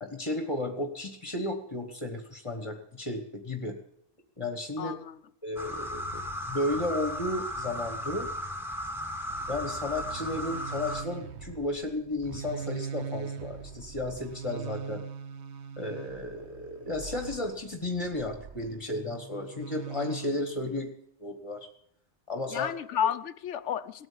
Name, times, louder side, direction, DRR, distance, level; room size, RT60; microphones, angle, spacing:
voice 1, 0.0-3.8 4.4-5.0 5.4-6.0 6.4-8.3 9.5-15.0 15.8-20.9 21.2-21.7 22.3-22.7, left 2 dB, 25° left, 5 dB, 1.5 m, -33 dB
voice 2, 4.8-5.2 22.5-24.1, left 9 dB, 80° left, 15 dB, 1.1 m, -31 dB
sound 1, 5.6-11.0, equal, ahead, 1.7 m, -35 dB
sound 2, 9.3-18.8 19.5-20.6, right 6 dB, 70° right, 1.1 m, -41 dB
18.0 x 9.1 x 8.5 m, 0.71 s
omnidirectional pair, 1.2 m